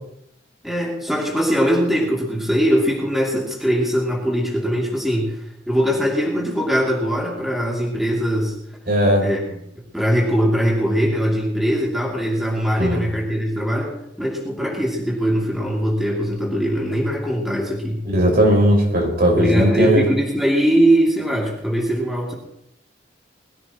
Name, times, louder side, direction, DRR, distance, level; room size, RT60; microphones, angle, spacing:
voice 1, 0.6-8.5 9.2-9.6 9.9-18.0 19.3-22.3, equal, ahead, -3 dB, 2.7 m, -21 dB
voice 2, 8.9-9.3 12.8-13.0 18.0-20.1, equal, 55° right, -1 dB, 5.1 m, -17 dB
21.5 x 15.5 x 3.0 m, 0.77 s
head